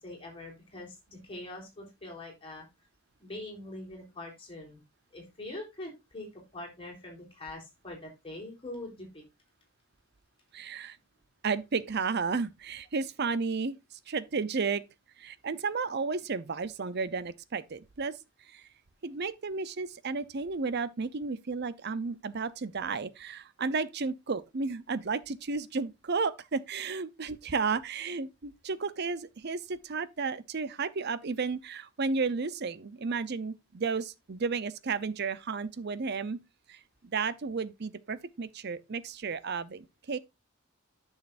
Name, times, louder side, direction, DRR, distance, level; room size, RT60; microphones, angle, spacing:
voice 1, 0.0-2.6 3.2-4.8 5.1-9.2, left 2 dB, 25° left, 3.8 m, -43 dB
voice 2, 10.5-11.0 11.4-14.8 15.2-18.2 18.5-18.6 19.0-36.4 36.7-40.2, right 4 dB, 50° right, 0.6 m, -33 dB
10.5 x 6.5 x 2.6 m
head